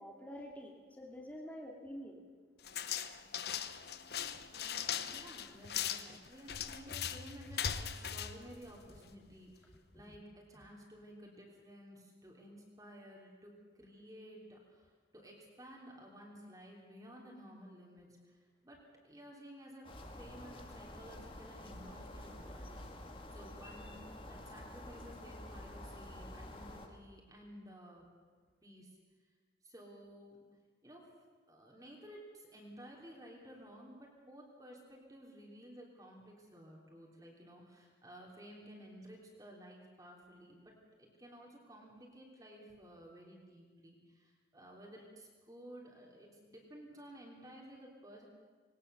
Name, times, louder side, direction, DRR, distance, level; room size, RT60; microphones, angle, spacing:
voice 1, 0.0-2.2 9.7-9.8 10.1-10.2, equal, 10° left, -1 dB, 2.4 m, -48 dB
sound 1, 2.6-9.2, left 8 dB, 65° left, 0.9 m, -40 dB
voice 2, 4.5-19.9 20.2-28.0 28.6-29.0 29.6-30.4 30.8-31.1 31.5-40.7 41.0-48.3, equal, 20° right, -2 dB, 3.3 m, -54 dB
sound 2, 19.8-26.9, left 1 dB, 30° left, 1.9 m, -49 dB
20.0 x 19.0 x 6.9 m, 1.5 s
head